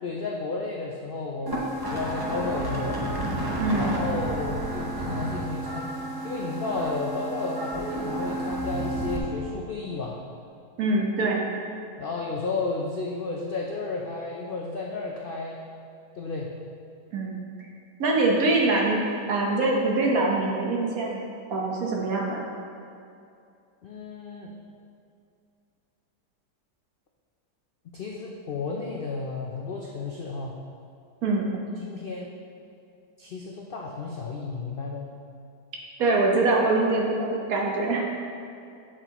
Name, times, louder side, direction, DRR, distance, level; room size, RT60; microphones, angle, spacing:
voice 1, 0.0-3.0 3.7-5.9 6.2-10.2 12.0-15.6 16.1-16.5 23.8-24.5 27.8-30.6 31.8-32.3 33.2-35.1, left 3 dB, 90° left, -1 dB, 0.4 m, -32 dB
sound 1, 1.5-9.2, right 1 dB, 20° right, 0.6 m, -31 dB
voice 2, 3.6-3.9 10.8-11.5 17.1-17.3 18.0-19.0 19.3-21.2 21.5-22.4 31.2-31.5 36.0-38.0, right 2 dB, 60° right, -2 dB, 1.5 m, -24 dB
7.9 x 7.4 x 2.9 m, 2.5 s
omnidirectional pair, 1.8 m